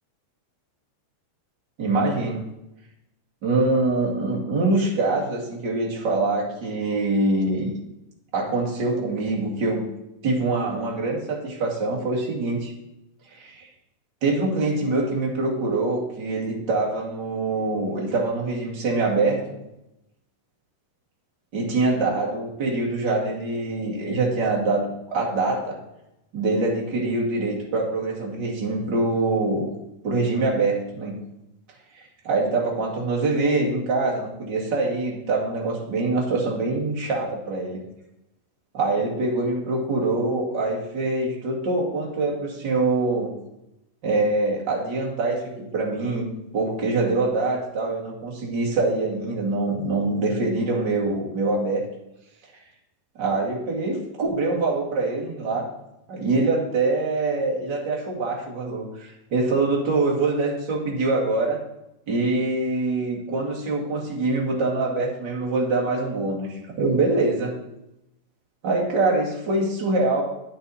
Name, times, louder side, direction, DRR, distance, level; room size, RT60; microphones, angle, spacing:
voice 1, 1.8-2.4 3.4-7.7 8.3-9.8 10.2-12.7 13.3-13.7 14.2-19.6 21.5-25.8 26.3-29.7 30.0-31.2 32.2-37.8 38.7-43.3 44.0-46.3 46.5-51.9 53.2-55.7 56.1-61.6 62.1-67.5 68.6-70.3, right 3 dB, 35° right, -3 dB, 2.2 m, -24 dB
10.0 x 7.0 x 4.2 m, 0.88 s
omnidirectional pair, 3.9 m